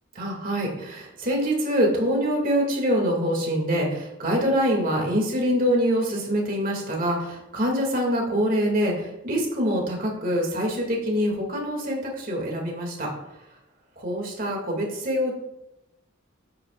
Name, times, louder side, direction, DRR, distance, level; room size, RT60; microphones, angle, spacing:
voice 1, 0.1-13.1 14.0-15.3, equal, 45° right, 0 dB, 2.5 m, -25 dB
11.0 x 8.6 x 2.5 m, 0.90 s
head